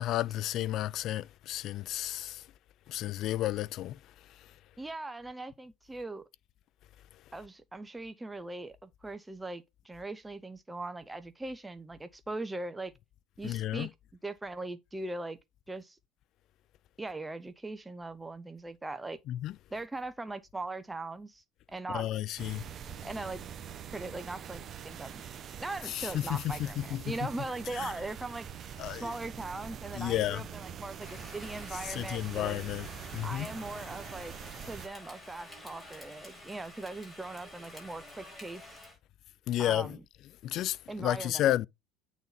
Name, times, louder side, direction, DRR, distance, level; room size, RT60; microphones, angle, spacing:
voice 1, 0.0-2.4 2.9-4.0 13.4-13.9 19.3-19.5 21.9-22.6 25.9-27.0 27.8-27.9 28.8-29.1 29.9-30.4 31.9-32.9 33.1-33.5 39.5-39.9 40.4-41.7, left 13 dB, 50° left, 0.4 m, -32 dB
voice 2, 4.8-6.2 7.3-12.9 13.4-13.9 14.2-15.4 15.7-16.0 17.0-19.2 19.7-21.4 21.7-22.1 23.0-23.4 23.9-25.2 25.6-28.5 29.0-32.6 33.2-34.3 34.6-38.8 39.6-40.0 40.9-41.5, right 2 dB, 10° right, 0.6 m, -40 dB
sound 1, 22.4-34.9, right 8 dB, 40° right, 0.9 m, -44 dB
Rain, 31.0-39.0, left 1 dB, 15° left, 4.9 m, -49 dB
8.5 x 4.0 x 4.0 m
supercardioid pair, 115°, 0 cm